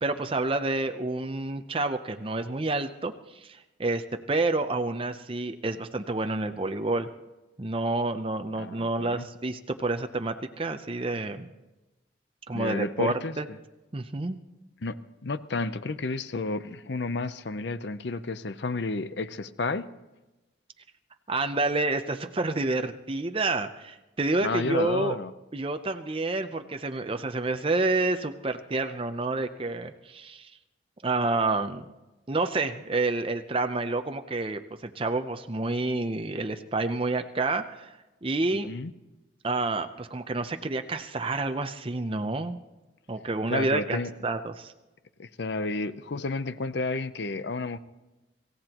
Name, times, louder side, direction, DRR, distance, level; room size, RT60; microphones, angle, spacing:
voice 1, 0.0-3.1 3.4-7.1 7.6-11.5 12.5-13.5 13.9-14.4 21.3-25.2 25.5-30.5 31.0-31.9 32.3-37.9 38.2-38.7 39.4-42.6 43.1-44.7, right 2 dB, 30° right, 7 dB, 0.6 m, -29 dB
voice 2, 8.5-9.3 12.5-13.3 14.8-15.0 15.2-19.9 24.4-25.3 38.7-38.9 43.5-44.1 45.2-47.8, left 3 dB, 60° left, 13 dB, 0.6 m, -31 dB
25.5 x 15.5 x 3.0 m, 1.1 s
head